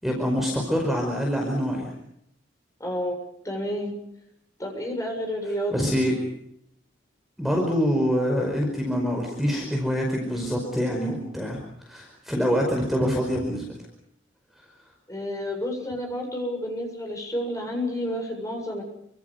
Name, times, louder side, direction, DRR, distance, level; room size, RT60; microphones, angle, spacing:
voice 1, 0.0-1.9 5.7-6.2 7.4-13.6, equal, ahead, 0 dB, 5.2 m, -25 dB
voice 2, 2.8-3.1 3.4-3.9 4.6-5.7 15.1-18.8, equal, 15° left, 2 dB, 7.5 m, -30 dB
28.0 x 26.0 x 5.4 m, 0.77 s
head